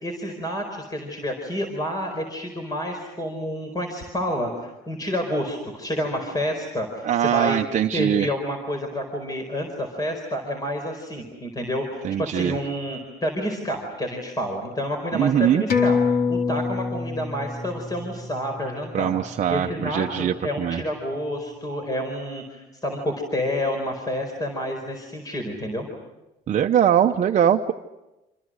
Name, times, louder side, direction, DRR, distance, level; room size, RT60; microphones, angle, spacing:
voice 1, 0.0-7.6 7.9-16.0 16.3-19.1 19.5-25.9, equal, 20° left, 4 dB, 4.7 m, -29 dB
voice 2, 7.0-8.3 12.0-12.6 15.1-15.6 18.9-20.8 26.5-27.7, right 9 dB, 45° right, 4 dB, 0.9 m, -21 dB
sound 1, 15.7-20.6 21.0-21.1, left 5 dB, 60° left, 3.4 m, -27 dB
28.5 x 27.0 x 6.4 m, 0.99 s
cardioid pair, 110°, 17 cm